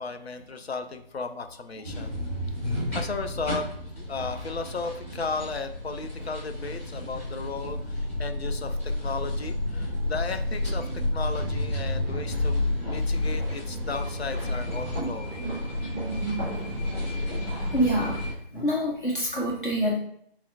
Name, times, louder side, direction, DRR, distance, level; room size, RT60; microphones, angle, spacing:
voice 1, 0.0-2.1 2.9-3.7 4.0-15.5, left 4 dB, 85° left, 7 dB, 0.5 m, -35 dB
sound 1, 1.8-18.3, left 1 dB, 15° left, 1.0 m, -30 dB
voice 2, 17.7-18.2 18.5-20.0, equal, 55° left, -4 dB, 0.9 m, -26 dB
4.2 x 2.0 x 2.7 m, 0.66 s
figure-of-eight pair, 160°, 31 cm